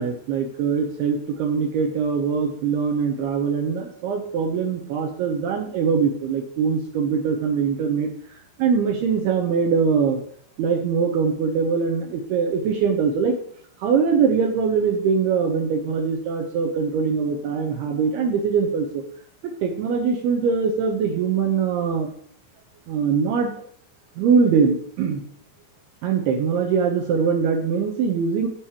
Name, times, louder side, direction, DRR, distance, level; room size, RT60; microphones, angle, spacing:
voice 1, 0.0-8.1 8.6-10.2 10.6-13.4 13.8-19.0 19.6-22.1 22.9-23.5 24.2-25.2 26.0-28.5, right 6 dB, 85° right, 2 dB, 2.3 m, -22 dB
14.5 x 4.9 x 3.0 m, 0.66 s
omnidirectional pair, 5.5 m